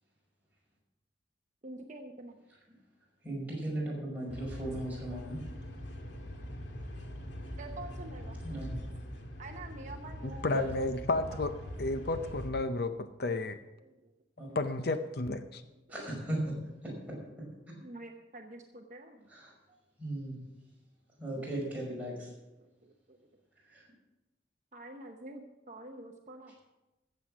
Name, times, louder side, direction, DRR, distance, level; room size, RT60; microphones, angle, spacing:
voice 1, 1.6-2.4 7.6-8.4 9.4-10.5 11.3-11.4 13.8-14.1 14.4-14.6 17.8-19.3 22.6-23.2 24.7-26.5, right 2 dB, 40° right, 3 dB, 0.8 m, -47 dB
voice 2, 3.2-5.4 8.4-8.9 10.5-10.7 14.4-14.6 15.9-16.5 16.8-16.9 19.3-19.5 20.0-20.4 21.2-22.3 23.7-23.8, right 1 dB, 10° right, -5 dB, 5.5 m, -37 dB
sound 1, 4.3-12.5, equal, 80° left, 1.7 m, -42 dB
voice 3, 10.4-13.6 14.5-15.6, left 2 dB, 55° left, 10 dB, 0.6 m, -32 dB
15.0 x 7.6 x 6.1 m, 1.0 s
head